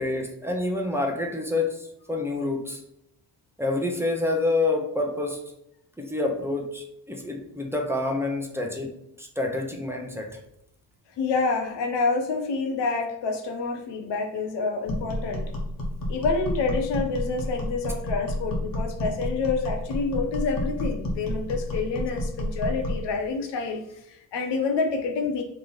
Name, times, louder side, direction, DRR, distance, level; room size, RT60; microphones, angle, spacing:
voice 1, 0.0-2.8 3.6-5.4 6.0-10.4, left 2 dB, 5° right, 1 dB, 0.7 m, -28 dB
voice 2, 11.2-15.5 16.1-25.4, left 4 dB, 85° left, 5 dB, 0.8 m, -28 dB
sound 1, 14.9-23.1, left 1 dB, 50° left, 1.2 m, -30 dB
3.1 x 2.7 x 3.9 m, 0.78 s
cardioid pair, 85°, 42 cm